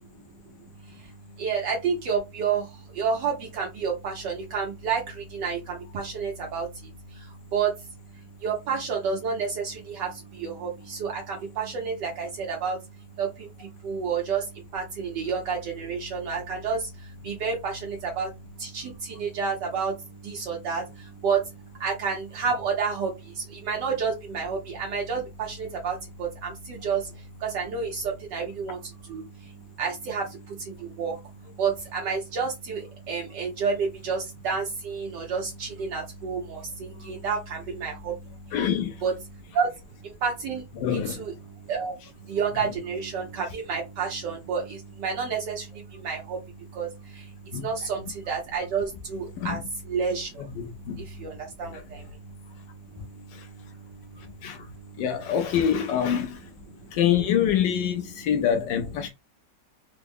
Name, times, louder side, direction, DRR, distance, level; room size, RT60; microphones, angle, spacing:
voice 1, 1.4-2.7 2.9-6.7 7.5-7.7 8.4-10.1 10.4-12.8 13.2-13.3 13.8-14.4 14.7-16.8 17.2-18.3 18.6-19.9 20.2-20.8 21.2-21.4 21.8-23.1 23.4-27.0 27.4-28.8 29.1-29.2 29.8-30.2 31.0-31.1 31.6-38.1 39.0-39.1 39.5-39.7 40.2-40.6 40.9-41.3 41.7-41.9 42.3-45.7 46.0-46.4 46.7-46.9 47.6-49.6 49.9-50.3 51.2-51.3 51.6-52.0, right 5 dB, 75° right, 1.4 m, -29 dB
voice 2, 38.5-38.9 40.8-41.2 47.5-47.7 49.4-49.6 50.6-51.0 53.3-53.5 54.4-54.7 55.0-56.4 56.9-59.1, left 9 dB, 85° left, 1.3 m, -25 dB
3.8 x 2.0 x 3.5 m
omnidirectional pair, 1.9 m